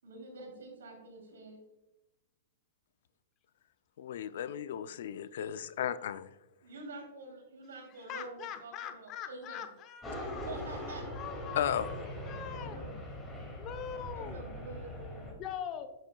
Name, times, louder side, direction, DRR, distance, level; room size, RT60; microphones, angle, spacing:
voice 1, 0.0-1.6 6.6-9.7 10.4-11.1 12.5-13.1 14.1-15.4, right 2 dB, 85° right, 1 dB, 2.9 m, -47 dB
voice 2, 4.0-6.3 11.5-11.9, left 9 dB, 70° left, 15 dB, 0.4 m, -34 dB
voice 3, 8.1-10.4 11.1-12.8 13.6-14.4 15.4-15.9, left 9 dB, 35° left, 9 dB, 0.8 m, -42 dB
sound 1, 10.0-15.3, left 1 dB, 15° left, 2.3 m, -41 dB
10.5 x 7.5 x 2.3 m, 0.99 s
hypercardioid pair, 135°, 0 cm